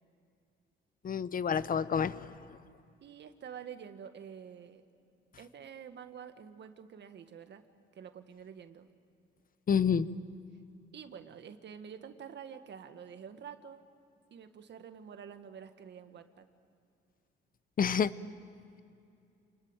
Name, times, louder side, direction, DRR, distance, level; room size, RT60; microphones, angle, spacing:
voice 1, 1.0-2.4 9.7-10.1 17.8-18.1, left 7 dB, 45° left, 15 dB, 0.9 m, -28 dB
voice 2, 3.0-4.8 5.4-7.6 7.9-8.9 10.9-13.8 14.3-16.5, right 7 dB, 60° right, 8 dB, 1.8 m, -48 dB
29.0 x 21.0 x 9.0 m, 2.5 s
cardioid pair, 90°, 20 cm